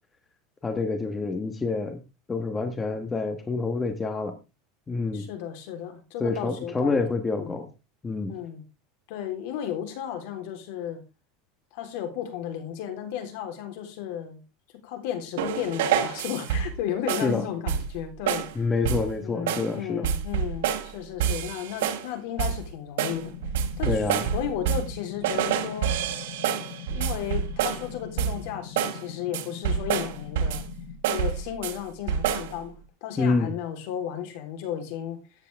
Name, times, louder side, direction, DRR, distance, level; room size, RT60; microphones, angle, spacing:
voice 1, 0.6-2.0 2.3-4.4 4.9-5.3 6.2-7.7 8.0-8.4 17.2-17.4 18.6-20.0 23.9-24.3 33.2-33.5, left 3 dB, 10° left, 1.2 m, -27 dB
voice 2, 5.1-7.6 8.3-8.6 9.1-11.0 11.7-14.4 14.8-18.5 19.2-23.3 23.8-24.0 24.3-26.0 26.9-30.6 31.1-35.2, left 10 dB, 60° left, 3.5 m, -34 dB
sound 1, 15.4-16.8 17.1-17.4 17.7-18.0 18.3-18.5 18.9-19.1 19.5-19.7 20.0-20.9 21.2-22.1 22.4-22.7 23.0-25.0 25.2-27.9 28.2-28.5 28.8-29.0 29.3-30.7 31.0-31.8 32.1-32.5, right 8 dB, 80° right, 2.8 m, -27 dB
sound 2, 23.0-31.0, left 10 dB, 75° left, 4.2 m, -42 dB
13.5 x 9.7 x 3.5 m
supercardioid pair, 165°, 0 cm